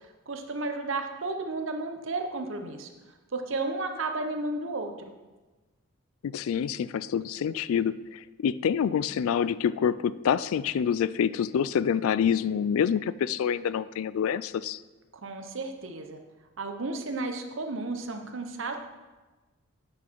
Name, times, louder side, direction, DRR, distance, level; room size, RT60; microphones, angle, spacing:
voice 1, 0.3-2.9 3.3-4.9 15.2-16.2 16.6-18.8, right 3 dB, 60° right, 5 dB, 0.9 m, -33 dB
voice 2, 6.2-14.8, left 8 dB, 70° left, 18 dB, 0.3 m, -27 dB
8.8 x 6.3 x 4.6 m, 1.2 s
head